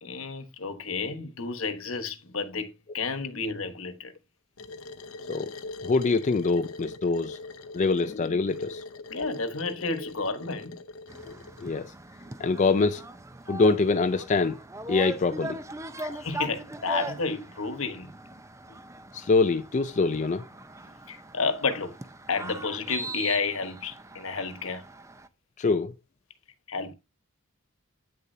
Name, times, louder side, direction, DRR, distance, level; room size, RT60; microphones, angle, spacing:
voice 1, 0.0-4.1 9.1-10.8 16.0-18.1 20.9-22.0 22.3-24.8 26.7-26.9, left 4 dB, 70° left, 1.3 m, -31 dB
sound 1, 4.6-11.7, left 2 dB, 90° left, 0.8 m, -42 dB
voice 2, 5.8-7.4 7.7-8.8 11.6-11.9 12.4-13.0 13.5-14.6 14.9-15.6 19.1-20.4 25.6-25.9, left 3 dB, 35° left, 0.4 m, -24 dB
sound 2, 11.1-25.3, right 2 dB, 15° right, 0.6 m, -40 dB
8.9 x 6.6 x 2.7 m
head